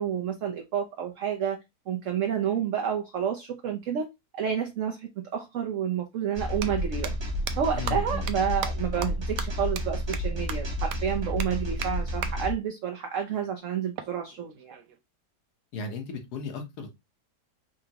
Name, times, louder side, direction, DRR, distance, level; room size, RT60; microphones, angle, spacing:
voice 1, 0.0-1.6 1.9-4.1 4.3-7.1 7.6-14.7, right 8 dB, 60° right, 0.9 m, -30 dB
sound 1, 5.3-5.4 6.4-6.7 7.0-7.1 7.5-7.6 7.9-8.0 8.3-8.4 8.6-8.7 9.0-9.1 9.4-9.5 9.8-9.9 10.1-10.2 10.5-10.6 10.9-11.0 11.4-11.5 11.8-11.9 12.2-12.3 14.0-15.0, right 8 dB, 80° right, 1.2 m, -35 dB
sound 2, 6.4-12.5, equal, 25° right, 0.5 m, -31 dB
voice 2, 7.7-8.2 15.7-16.9, left 3 dB, 70° left, 1.6 m, -36 dB
5.0 x 3.3 x 2.8 m
omnidirectional pair, 1.8 m